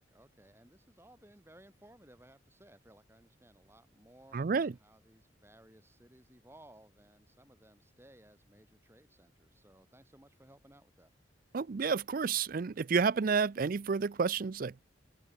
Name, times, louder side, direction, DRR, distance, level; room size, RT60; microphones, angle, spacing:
voice 1, 0.0-11.1, right 1 dB, 15° right, 4.9 m, -60 dB
voice 2, 4.3-4.7 11.5-14.8, right 5 dB, 50° right, 0.4 m, -30 dB
open air
head